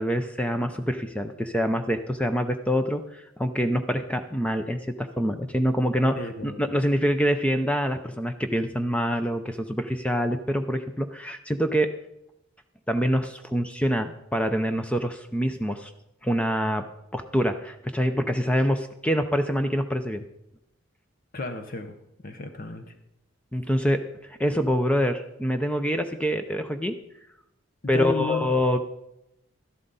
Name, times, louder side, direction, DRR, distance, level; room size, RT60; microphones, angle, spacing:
voice 1, 0.0-11.9 12.9-15.9 16.2-16.8 17.1-20.3 23.5-26.9 27.9-28.8, equal, 5° left, 7 dB, 0.5 m, -25 dB
voice 2, 6.2-6.7 21.3-21.9 22.2-22.9 27.8-28.5, left 3 dB, 40° left, 7 dB, 0.8 m, -33 dB
12.5 x 11.0 x 4.0 m, 0.83 s
head